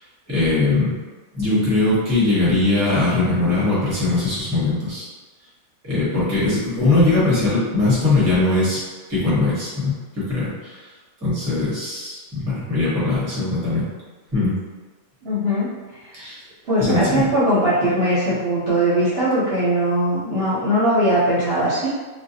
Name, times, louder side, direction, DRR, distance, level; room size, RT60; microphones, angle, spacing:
voice 1, 0.3-1.0 1.3-5.1 5.8-10.8 11.2-13.9 14.3-14.6 16.1-16.4 16.8-17.3, left 2 dB, 15° right, -9 dB, 0.6 m, -20 dB
voice 2, 15.2-15.7 16.0-16.2 16.7-21.9, right 1 dB, 55° right, -10 dB, 0.8 m, -20 dB
2.4 x 2.2 x 2.7 m, 1.3 s
omnidirectional pair, 1.5 m